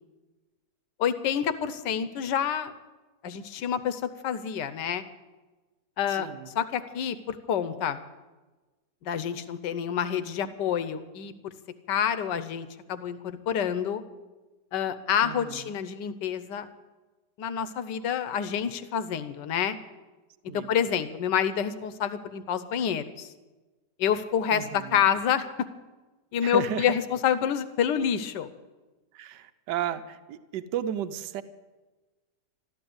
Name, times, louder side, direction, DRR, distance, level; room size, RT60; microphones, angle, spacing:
voice 1, 1.0-2.7 3.2-5.0 6.0-6.3 6.5-8.0 9.0-11.5 11.9-14.0 14.7-16.7 17.4-19.8 20.5-23.3 24.0-25.5 26.3-28.5, left 8 dB, 85° left, 12 dB, 1.5 m, -28 dB
voice 2, 6.1-6.5 15.2-15.8 20.5-20.7 24.5-25.1 26.4-27.0 29.1-31.4, right 10 dB, 80° right, 11 dB, 1.4 m, -34 dB
13.0 x 12.5 x 7.9 m, 1.2 s
omnidirectional pair, 1.8 m